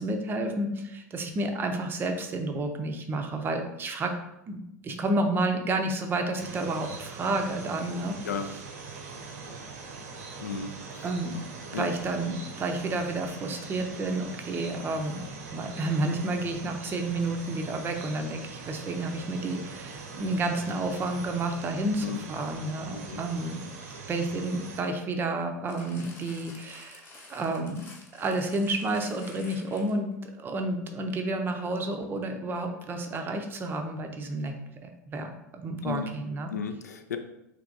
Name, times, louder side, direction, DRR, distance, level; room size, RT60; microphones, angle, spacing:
voice 1, 0.0-4.1 4.5-8.2 11.0-11.4 11.7-15.2 15.5-23.6 24.1-27.0 27.3-27.8 28.1-34.6 34.8-36.5, right 2 dB, 25° right, 5 dB, 0.5 m, -30 dB
sound 1, 6.3-24.8, right 4 dB, 60° right, 0.7 m, -42 dB
voice 2, 10.4-11.1 11.7-11.9 22.0-22.2 22.9-23.2 35.8-36.1 36.5-37.2, left 6 dB, 70° left, 8 dB, 0.4 m, -34 dB
sound 2, 25.7-30.1 30.9-31.0, left 2 dB, 25° left, 0.8 m, -50 dB
3.4 x 2.9 x 3.8 m, 0.85 s
figure-of-eight pair, 85°, 9 cm